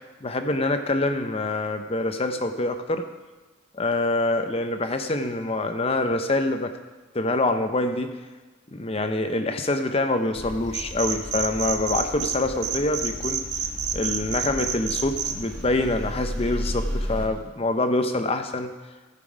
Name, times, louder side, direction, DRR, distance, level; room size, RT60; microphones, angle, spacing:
voice 1, 0.2-3.1 3.7-6.7 7.1-8.1 8.7-13.4 13.9-18.7, left 2 dB, 30° left, 7 dB, 0.7 m, -25 dB
sound 1, 10.3-17.3, equal, 5° left, 1.5 m, -34 dB
sound 2, 10.7-12.4 12.6-15.3, right 8 dB, 35° right, 0.7 m, -28 dB
14.5 x 5.9 x 5.0 m, 1.3 s
head